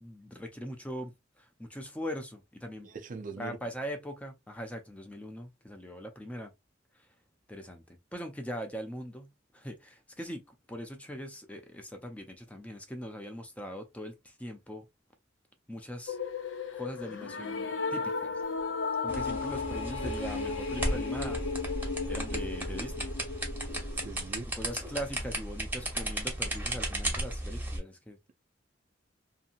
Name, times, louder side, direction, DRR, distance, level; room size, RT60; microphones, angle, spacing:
voice 1, 0.0-2.9 3.4-6.5 7.5-14.9 15.7-16.2 16.7-18.3 19.0-21.4 22.1-23.1 24.6-28.2, equal, 10° left, 0.5 m, -41 dB
voice 2, 2.8-3.6 20.9-21.0 24.0-24.5, right 4 dB, 45° right, 0.5 m, -42 dB
sound 1, 16.1-24.3, left 4 dB, 90° left, 0.6 m, -35 dB
sound 2, 19.1-27.8, right 1 dB, 10° right, 0.8 m, -35 dB
2.7 x 2.7 x 2.4 m
head